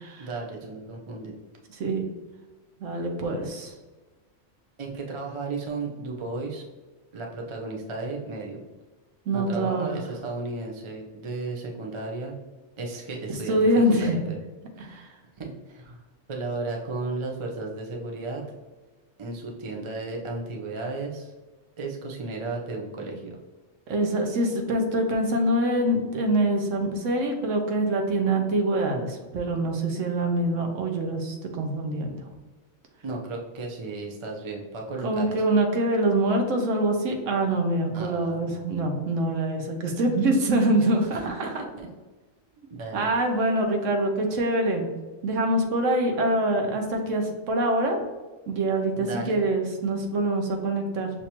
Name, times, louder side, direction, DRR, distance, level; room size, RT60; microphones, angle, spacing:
voice 1, 0.2-1.3 4.8-6.6 7.1-8.6 9.3-12.4 12.8-13.6 13.9-14.4 14.8-15.0 15.4-16.0 16.3-18.4 19.2-21.3 21.8-23.4 33.0-35.4 37.9-38.6 41.8-41.9 42.7-43.1 48.9-49.4, right 3 dB, 40° right, 0 dB, 0.4 m, -34 dB
voice 2, 2.8-3.7 9.3-9.9 13.3-14.2 14.8-15.1 23.9-32.1 35.0-41.5 42.9-44.9 45.2-48.0 48.5-51.1, right 1 dB, 70° right, 3 dB, 1.1 m, -25 dB
6.3 x 2.7 x 2.9 m, 1.2 s
omnidirectional pair, 1.4 m